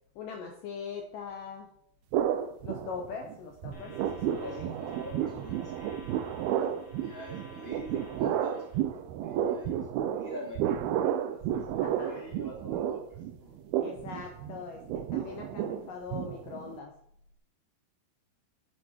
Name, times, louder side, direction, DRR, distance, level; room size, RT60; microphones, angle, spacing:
voice 1, 0.2-1.7 2.6-4.7 11.8-12.4 13.8-16.9, left 5 dB, 70° left, 3 dB, 2.3 m, -41 dB
sound 1, 2.1-3.4 3.6-16.8, right 10 dB, 75° right, 2.3 m, -32 dB
sound 2, 3.7-8.8, right 3 dB, 40° left, 2.2 m, -49 dB
voice 2, 4.2-8.6 9.2-13.0 13.4-13.5, equal, 20° right, -4 dB, 2.1 m, -46 dB
12.0 x 7.1 x 4.6 m, 0.67 s
omnidirectional pair, 4.9 m